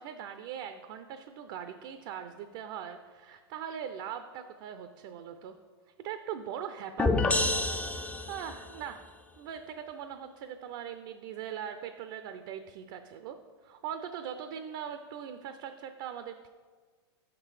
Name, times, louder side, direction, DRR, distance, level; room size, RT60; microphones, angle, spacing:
voice 1, 0.0-5.5 6.0-7.3 8.3-9.0 9.4-13.4 13.6-16.5, right 8 dB, 50° right, 8 dB, 0.5 m, -41 dB
sound 1, 7.0-8.7, left 2 dB, 10° left, 0.4 m, -28 dB
6.1 x 5.9 x 4.8 m, 1.5 s
hypercardioid pair, 120°, 14 cm